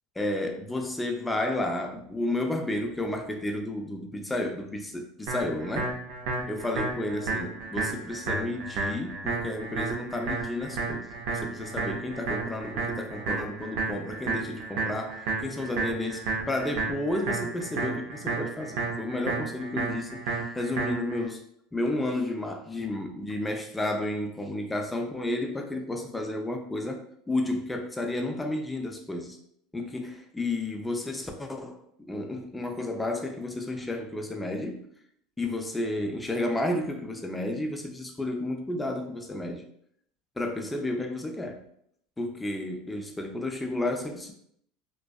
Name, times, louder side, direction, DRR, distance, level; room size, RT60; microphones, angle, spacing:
voice 1, 0.2-6.0 6.5-11.1 11.3-21.4 21.7-27.0 27.3-29.4 29.7-31.8 32.1-34.9 35.4-39.6 40.4-41.6 42.2-44.3, left 1 dB, 10° left, 0.4 m, -32 dB
sound 1, 5.3-21.3, right 3 dB, 70° right, 0.6 m, -32 dB
2.4 x 2.3 x 2.3 m
supercardioid pair, 105°, 0 cm